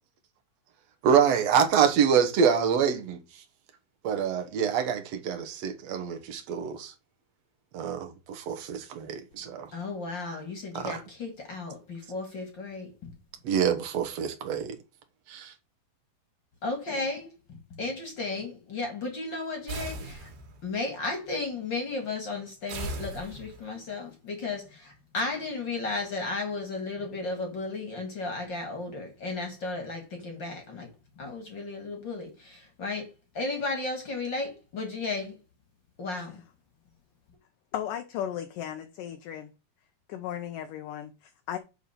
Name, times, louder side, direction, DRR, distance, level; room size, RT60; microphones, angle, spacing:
voice 1, 1.0-3.2 4.0-6.9 7.7-9.7 10.7-11.0 13.4-14.8 15.3-15.5, right 7 dB, 65° right, 1.7 m, -26 dB
voice 2, 9.7-13.1 16.6-20.3 20.6-35.4 36.0-36.4, left 3 dB, 40° left, 1.9 m, -34 dB
sound 1, 19.7-20.7 22.7-23.8, right 2 dB, 85° right, 4.0 m, -37 dB
voice 3, 37.7-39.5 40.1-41.6, left 10 dB, 75° left, 2.1 m, -35 dB
9.3 x 3.9 x 6.6 m
omnidirectional pair, 4.5 m